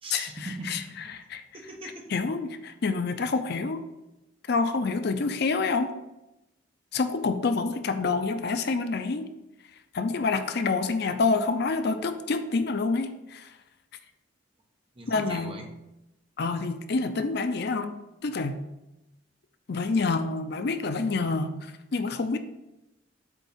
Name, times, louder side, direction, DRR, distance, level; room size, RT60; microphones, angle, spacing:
voice 1, 0.0-1.1 1.5-2.1 14.9-15.7, right 2 dB, 30° right, 2 dB, 1.0 m, -40 dB
voice 2, 2.1-3.8 4.5-5.9 6.9-9.3 9.9-13.5 15.1-15.6 16.4-18.0 18.2-18.6 19.7-22.4, left 4 dB, 60° left, 9 dB, 0.5 m, -27 dB
8.2 x 3.6 x 5.5 m, 0.96 s
head